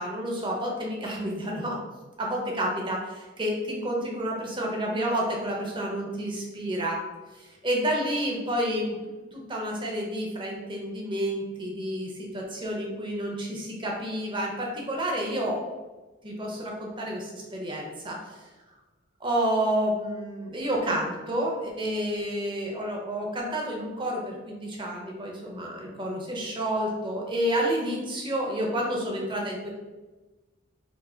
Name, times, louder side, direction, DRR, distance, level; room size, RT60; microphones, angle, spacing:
voice 1, 0.0-1.8 2.2-7.0 7.3-15.6 16.2-18.4 19.2-29.7, equal, 25° right, -1 dB, 0.9 m, -30 dB
4.6 x 2.1 x 4.3 m, 1.2 s
head